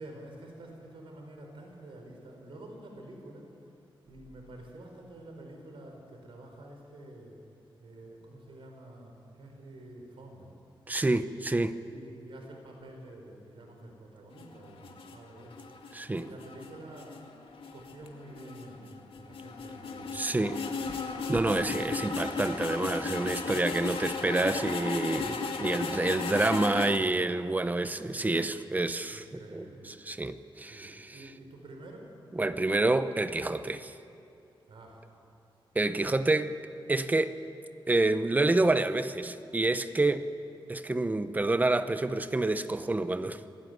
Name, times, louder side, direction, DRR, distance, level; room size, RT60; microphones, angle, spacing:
voice 1, 0.0-3.7 4.1-7.4 7.8-10.5 11.8-15.7 16.1-17.2 17.7-20.2 25.5-26.0 29.1-29.9 30.7-32.1 34.7-35.1, right 1 dB, 75° right, 2 dB, 4.7 m, -48 dB
voice 2, 10.9-11.8 15.9-16.3 20.1-20.6 21.3-29.3 29.5-31.2 32.4-33.9 35.7-36.6 36.9-37.3 37.9-40.3 40.7-43.4, right 2 dB, 20° right, 11 dB, 0.8 m, -28 dB
sound 1, 14.3-27.0, left 4 dB, 85° left, 2.2 m, -35 dB
26.0 x 18.0 x 9.5 m, 2.6 s
wide cardioid pair, 160°, 9 cm